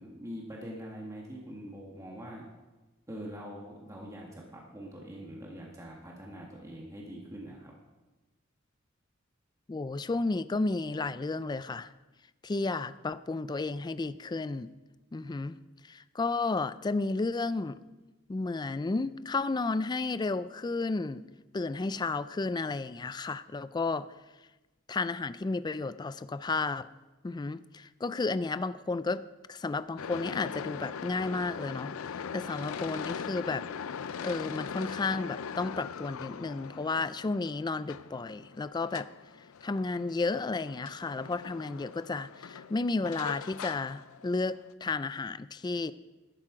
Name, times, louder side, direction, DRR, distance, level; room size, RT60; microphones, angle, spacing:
voice 1, 0.0-2.4 3.1-7.7, equal, 15° right, -3 dB, 1.7 m, -43 dB
voice 2, 9.7-11.9 12.4-14.7 15.1-15.6 15.8-17.8 18.3-21.2 21.5-24.1 24.9-26.9 27.2-29.2 29.5-33.7 34.2-39.1 39.6-45.9, left 3 dB, 20° left, 14 dB, 0.3 m, -32 dB
sound 1, 30.0-44.7, left 7 dB, 80° left, 0.5 m, -41 dB
12.0 x 12.0 x 5.0 m, 1.1 s
head